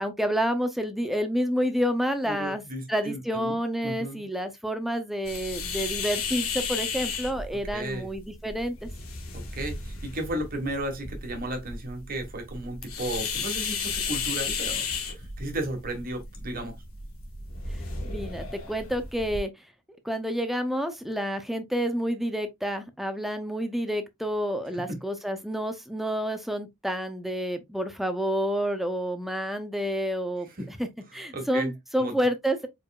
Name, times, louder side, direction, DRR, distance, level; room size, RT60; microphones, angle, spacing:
voice 1, 0.0-2.6 2.9-8.9 18.0-19.5 20.0-32.7, equal, ahead, 0.6 m, -29 dB
voice 2, 2.2-3.6 3.8-4.2 7.7-8.1 9.3-16.8 24.7-25.0 30.6-30.7 31.3-31.7 32.0-32.2, right 1 dB, 45° right, 1.4 m, -34 dB
sound 1, 5.3-19.4, left 5 dB, 85° left, 1.4 m, -34 dB
4.7 x 4.4 x 2.4 m
head